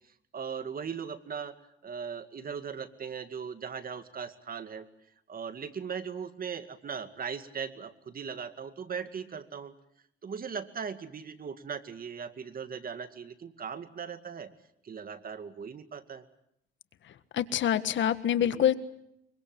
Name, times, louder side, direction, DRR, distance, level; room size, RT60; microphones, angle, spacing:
voice 1, 0.3-1.5 1.8-4.9 5.3-9.7 10.2-14.5 14.8-16.2 18.4-18.7, right 6 dB, 45° right, 10 dB, 2.2 m, -38 dB
voice 2, 17.3-18.7, left 10 dB, 70° left, 12 dB, 1.6 m, -25 dB
24.5 x 23.5 x 7.7 m, 0.77 s
cardioid pair, 90°, 20 cm